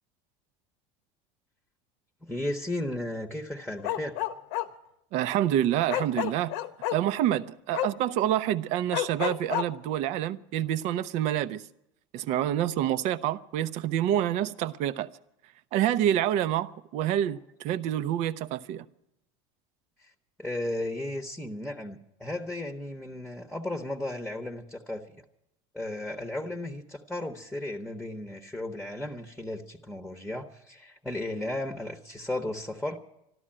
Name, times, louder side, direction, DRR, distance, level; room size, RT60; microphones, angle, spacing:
voice 1, 2.2-4.2 20.0-20.1 20.4-25.2 25.7-33.0, left 1 dB, ahead, 1.1 m, -35 dB
Bark, 3.8-4.7 5.9-7.0 7.7-7.9 8.9-9.7, left 13 dB, 75° left, 1.0 m, -29 dB
voice 2, 5.1-6.5 6.9-11.6 12.1-15.1 15.7-18.8, right 11 dB, 55° right, 0.7 m, -27 dB
13.0 x 12.5 x 8.8 m
supercardioid pair, 115°, 14 cm